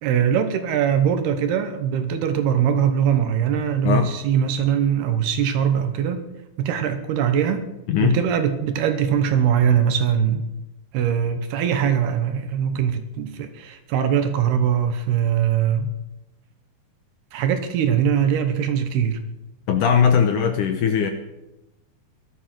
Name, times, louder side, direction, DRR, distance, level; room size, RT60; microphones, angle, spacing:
voice 1, 0.0-6.2 6.6-7.6 8.0-10.4 10.9-15.9 17.3-19.2, right 8 dB, 70° right, 9 dB, 3.0 m, -21 dB
voice 2, 7.9-8.2 19.7-21.1, left 7 dB, 70° left, 6 dB, 2.0 m, -19 dB
17.5 x 12.5 x 6.1 m, 0.93 s
omnidirectional pair, 5.1 m